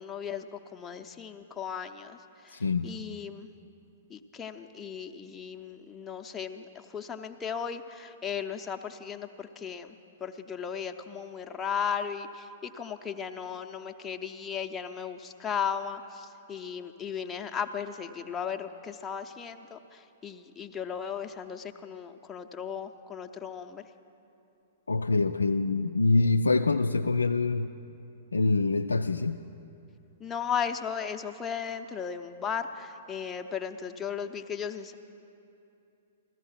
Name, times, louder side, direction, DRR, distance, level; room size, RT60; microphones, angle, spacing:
voice 1, 0.0-3.5 4.1-23.8 30.2-34.9, left 7 dB, 15° left, 4 dB, 0.7 m, -36 dB
voice 2, 2.5-2.9 24.9-27.7 28.3-29.4, left 3 dB, 80° left, 6 dB, 0.3 m, -25 dB
15.0 x 13.5 x 5.8 m, 2.8 s
figure-of-eight pair, 110°, 0 cm